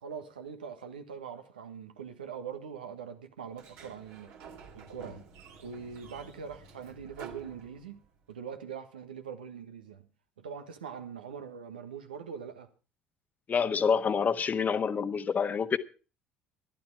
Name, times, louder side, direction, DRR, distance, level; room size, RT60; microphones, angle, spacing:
voice 1, 0.0-4.3 4.7-5.2 5.6-8.0 8.3-10.0 10.4-12.7, right 7 dB, 80° right, 1.5 m, -42 dB
Sliding door, 3.5-8.2, right 5 dB, 60° right, 2.6 m, -50 dB
voice 2, 13.5-15.8, left 6 dB, 35° left, 1.3 m, -27 dB
14.5 x 12.0 x 4.7 m
figure-of-eight pair, 60°, 5 cm